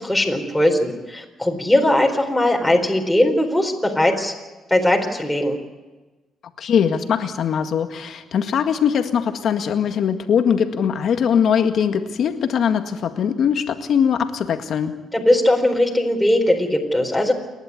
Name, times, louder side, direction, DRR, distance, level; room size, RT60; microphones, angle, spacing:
voice 1, 0.0-4.3 4.7-5.6 15.1-17.3, left 1 dB, 5° left, 1 dB, 4.2 m, -19 dB
voice 2, 6.6-15.0, left 7 dB, 65° left, 7 dB, 1.8 m, -21 dB
29.0 x 11.5 x 9.6 m, 1.2 s
cardioid pair, 90°, 0 cm